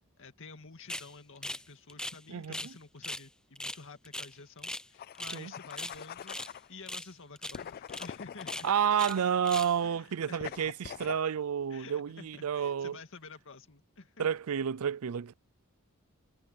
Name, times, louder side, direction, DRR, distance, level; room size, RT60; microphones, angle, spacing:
voice 1, 0.2-6.4 6.7-8.7 9.8-10.6 11.7-14.3, left 4 dB, 60° left, 2.1 m, -50 dB
sound 1, 0.9-1.1 1.4-1.6 1.9-2.7 3.0-3.3 3.6-4.9 5.2-5.4 5.7-6.5 6.9-7.1 7.4-7.6 7.9-8.1 8.4-9.2 9.4-9.8, left 1 dB, 5° left, 0.6 m, -39 dB
sound 2, 4.9-6.7 7.5-9.7 10.4-11.2, left 8 dB, 45° left, 0.3 m, -44 dB
voice 2, 8.6-13.0 14.2-15.3, right 8 dB, 75° right, 0.5 m, -30 dB
head